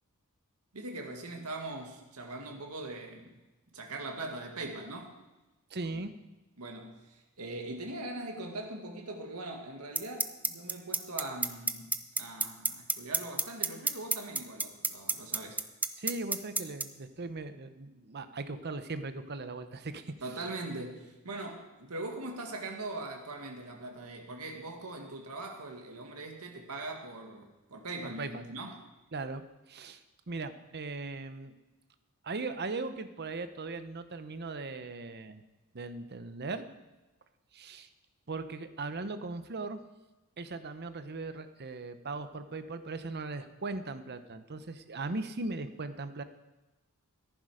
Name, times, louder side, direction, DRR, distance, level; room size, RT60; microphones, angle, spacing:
voice 1, 0.7-3.4 3.7-5.1 5.9-6.1 6.6-15.6 15.9-16.0 20.2-28.8, right 2 dB, 85° right, 2 dB, 2.0 m, -41 dB
voice 2, 5.7-6.1 16.0-20.1 28.0-28.4 29.1-29.4 29.7-30.0 30.3-31.5 32.2-35.4 35.7-36.7 37.5-37.9 38.3-39.8 40.4-46.2, right 3 dB, 50° right, 10 dB, 0.9 m, -38 dB
sound 1, 10.0-16.8, right 3 dB, 5° right, 0.5 m, -28 dB
14.0 x 11.0 x 5.0 m, 1.1 s
head